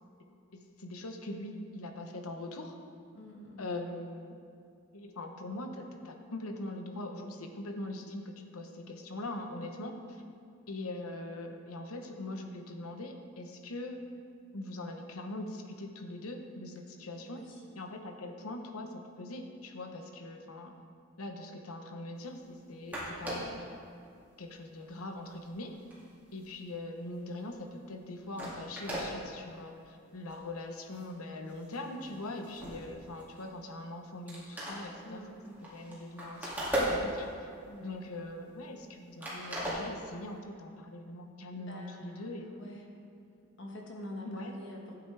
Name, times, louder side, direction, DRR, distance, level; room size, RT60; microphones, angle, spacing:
voice 1, 0.5-2.8 3.6-4.4 4.9-10.2 10.7-14.0 14.5-17.4 17.7-20.7 21.2-23.8 24.4-25.7 26.3-35.3 35.7-37.5 37.8-42.5 44.2-44.6, left 2 dB, 85° left, 4 dB, 1.0 m, -42 dB
voice 2, 3.1-3.6 9.5-9.7 17.3-17.5 35.0-35.6 37.7-37.9 41.6-42.9 43.6-44.9, left 1 dB, 55° left, 0 dB, 1.4 m, -46 dB
sound 1, 22.6-22.7 22.9-23.6 24.2-24.4 24.8-27.1 27.5-27.7 28.1-28.2 28.3-29.1 29.7-29.8 30.2-30.4 30.8-31.2 31.4-33.7 34.0-34.1 34.3-37.5 37.9-38.9 39.2-40.3, equal, 10° right, 2.3 m, -38 dB
12.5 x 8.8 x 3.4 m, 2.4 s
head